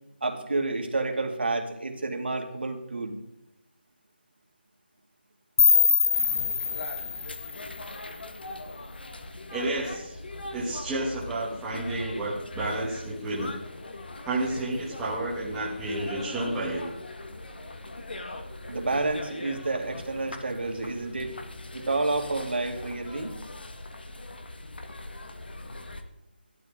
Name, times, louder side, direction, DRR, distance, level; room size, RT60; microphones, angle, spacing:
voice 1, 0.2-3.2 18.7-21.3 21.7-23.4, right 2 dB, 70° right, 3 dB, 2.4 m, -29 dB
sound 1, 5.6-8.5, left 6 dB, 20° left, 0.6 m, -24 dB
sound 2, 6.1-26.0, left 2 dB, 60° left, 1.6 m, -41 dB
voice 2, 9.5-10.2 10.5-13.5 14.2-16.9, right 2 dB, 5° right, -7 dB, 1.3 m, -31 dB
15.5 x 12.0 x 3.8 m, 0.88 s
figure-of-eight pair, 175°, 6 cm